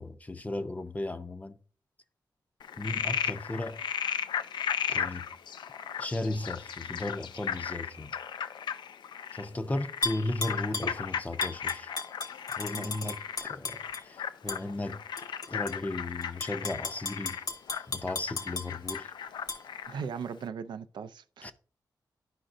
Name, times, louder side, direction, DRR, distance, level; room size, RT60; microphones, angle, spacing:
voice 1, 0.0-1.6 2.8-3.8 4.9-5.3 6.0-8.1 9.3-11.9 12.6-15.0 15.5-17.4 17.9-19.1 21.4-21.5, left 2 dB, 20° left, 0.5 m, -35 dB
Frog, 2.6-20.0, left 8 dB, 85° left, 0.3 m, -36 dB
Tap / Glass, 10.0-10.9 11.4-14.0 14.5-14.6 15.2-15.7 16.2-19.0 19.5-19.6, left 3 dB, 55° left, 1.0 m, -35 dB
voice 2, 12.7-13.2 19.9-21.5, right 6 dB, 85° right, 0.4 m, -39 dB
11.0 x 5.0 x 2.5 m
wide cardioid pair, 95°, 8 cm